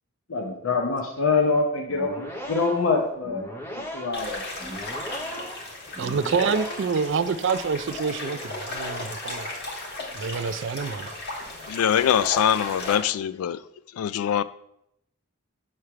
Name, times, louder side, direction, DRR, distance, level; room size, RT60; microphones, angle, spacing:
voice 1, 0.3-3.4 3.7-4.4, left 4 dB, 70° left, 0.8 m, -25 dB
sound 1, 1.8-7.1, equal, 10° left, 0.6 m, -37 dB
sound 2, 4.1-12.9, left 2 dB, 50° left, 1.4 m, -35 dB
voice 2, 6.0-9.5 10.1-11.1, right 5 dB, 55° right, 0.3 m, -27 dB
voice 3, 11.7-13.6 13.9-14.4, left 9 dB, 85° left, 0.3 m, -23 dB
7.3 x 3.2 x 5.7 m
head